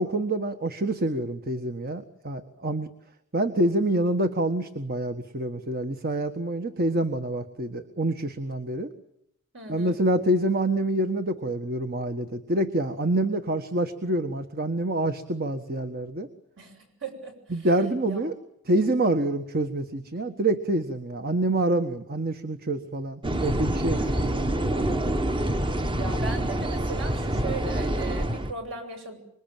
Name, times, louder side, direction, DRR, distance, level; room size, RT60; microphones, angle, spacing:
voice 1, 0.0-2.9 3.3-8.9 9.7-16.3 17.5-18.3 18.7-24.9, right 1 dB, 45° right, 8 dB, 1.5 m, -27 dB
voice 2, 9.5-10.0 16.6-18.3 23.9-24.4 26.0-29.2, right 3 dB, 65° right, 4 dB, 7.8 m, -38 dB
sound 1, 23.2-28.5, right 1 dB, 25° right, 1.2 m, -26 dB
26.0 x 23.0 x 9.1 m, 0.74 s
head